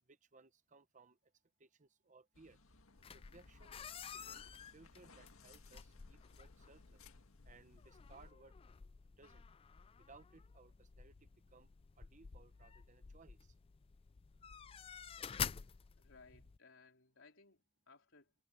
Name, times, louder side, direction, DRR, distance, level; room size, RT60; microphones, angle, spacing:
voice 1, 0.1-1.2 1.6-2.6 3.1-3.8 4.1-4.4 4.7-7.1 7.4-8.5 9.2-9.4 10.1-11.7 12.0-13.5 16.3-16.4, right 3 dB, 35° right, 0.9 m, -63 dB
sound 1, 2.3-8.3, left 3 dB, 80° left, 1.9 m, -64 dB
sound 2, 3.0-16.6, left 7 dB, 25° left, 0.3 m, -50 dB
voice 2, 16.0-18.3, left 4 dB, 65° left, 3.9 m, -63 dB
head